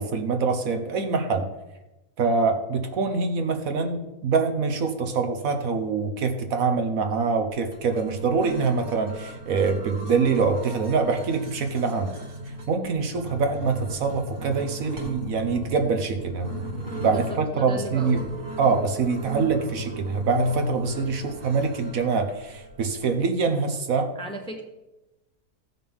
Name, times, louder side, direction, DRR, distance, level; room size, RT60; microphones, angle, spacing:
voice 1, 0.0-1.5 2.2-12.1 12.7-16.5 17.0-18.2 18.6-24.1, right 4 dB, 65° right, 6 dB, 1.4 m, -25 dB
sound 1, 7.4-23.2, equal, 35° right, 1.5 m, -36 dB
voice 2, 17.1-18.4 24.2-24.6, right 1 dB, 5° left, 2 dB, 0.8 m, -36 dB
15.5 x 6.0 x 3.6 m, 0.99 s
omnidirectional pair, 1.6 m